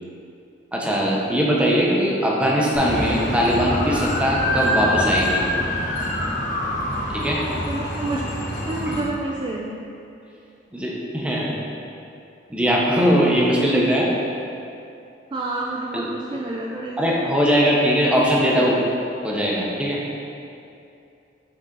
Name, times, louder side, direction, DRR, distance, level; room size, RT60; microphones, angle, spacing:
voice 1, 0.7-5.4 7.1-7.4 10.7-11.5 12.5-14.1 15.9-16.0 17.0-18.8 19.2-20.0, equal, 5° right, -4 dB, 0.7 m, -20 dB
sound 1, 2.7-9.0, left 1 dB, 45° left, 1.2 m, -25 dB
voice 2, 7.7-8.3 8.7-9.8 15.3-17.3, right 2 dB, 25° right, -3 dB, 0.3 m, -29 dB
6.2 x 3.9 x 3.9 m, 2.6 s
head